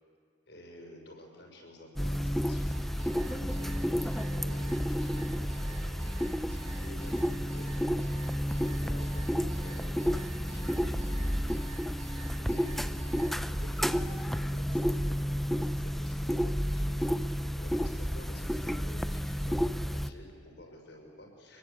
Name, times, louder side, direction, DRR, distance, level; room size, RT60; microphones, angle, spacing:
voice 1, 0.5-7.7 8.4-12.0 12.3-21.6, left 1 dB, 60° left, 1 dB, 6.3 m, -52 dB
sound 1, 2.0-20.1, equal, ahead, 0.6 m, -31 dB
sound 2, 2.7-13.3, right 5 dB, 80° right, 6.5 m, -50 dB
25.0 x 23.0 x 8.8 m, 2.4 s
head